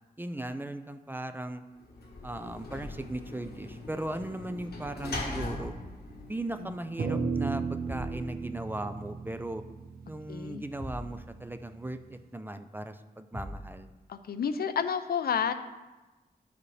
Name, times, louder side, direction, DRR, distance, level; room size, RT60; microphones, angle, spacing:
voice 1, 0.2-1.6 2.2-5.8 6.3-9.6 10.0-13.9, right 1 dB, 15° right, 9 dB, 0.4 m, -37 dB
Sliding door / Slam, 1.8-7.2, left 2 dB, 90° left, 1.2 m, -41 dB
sound 1, 5.1-5.5 7.9-8.2 10.8-11.2 13.3-13.7, equal, 55° right, 2.1 m, -40 dB
sound 2, 7.0-11.5, right 5 dB, 75° right, 0.9 m, -35 dB
voice 2, 10.3-10.6 14.1-15.5, left 7 dB, 75° left, 10 dB, 0.5 m, -30 dB
11.5 x 5.0 x 3.2 m, 1.1 s
wide cardioid pair, 130°, 16 cm